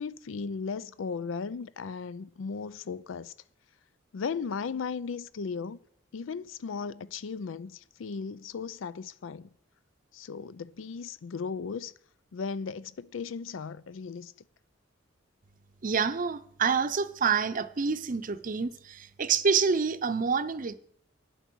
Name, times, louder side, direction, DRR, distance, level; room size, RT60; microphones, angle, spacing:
voice 1, 0.0-3.3 4.1-5.8 6.1-9.5 10.1-11.9 12.3-14.3, left 5 dB, 90° left, 0.4 m, -36 dB
voice 2, 15.8-20.7, right 5 dB, 45° right, 0.6 m, -27 dB
9.4 x 8.0 x 6.2 m
head